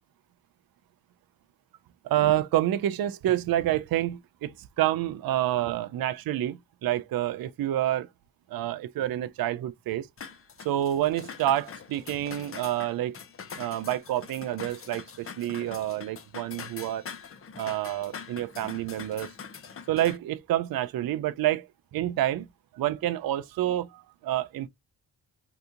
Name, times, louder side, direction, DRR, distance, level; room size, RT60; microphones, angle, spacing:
voice 1, 2.0-8.1 8.5-10.1 10.6-13.2 13.6-17.0 17.6-19.3 19.9-22.5 22.7-24.7, right 13 dB, 55° right, 0.5 m, -28 dB
sound 1, 10.2-20.2, left 6 dB, 30° left, 0.5 m, -43 dB
2.8 x 2.4 x 3.5 m
cardioid pair, 70°, 44 cm